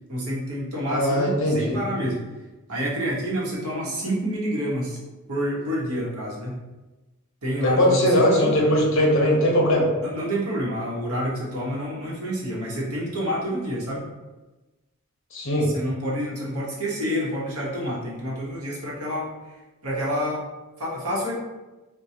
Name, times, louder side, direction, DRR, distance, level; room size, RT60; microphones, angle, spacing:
voice 1, 0.1-2.2 2.7-5.0 5.3-6.6 7.4-8.7 10.0-14.0 15.6-19.3 19.8-20.5 20.8-21.3, equal, 85° right, -4 dB, 1.1 m, -28 dB
voice 2, 0.9-1.8 7.6-9.9 15.3-15.7, equal, 60° left, -1 dB, 0.9 m, -20 dB
4.5 x 2.2 x 2.7 m, 1.1 s
head